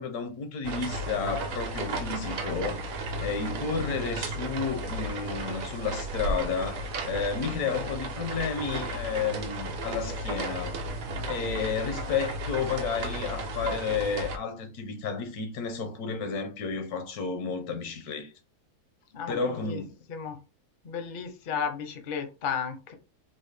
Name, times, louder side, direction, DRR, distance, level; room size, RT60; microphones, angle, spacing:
voice 1, 0.0-2.9 3.2-10.8 11.3-18.3 19.3-19.9, left 5 dB, 85° left, 1.3 m, -31 dB
sound 1, 0.6-14.4, right 1 dB, 70° right, 1.1 m, -34 dB
voice 2, 20.8-22.9, left 7 dB, 55° left, 0.6 m, -33 dB
4.0 x 2.1 x 3.3 m
omnidirectional pair, 1.6 m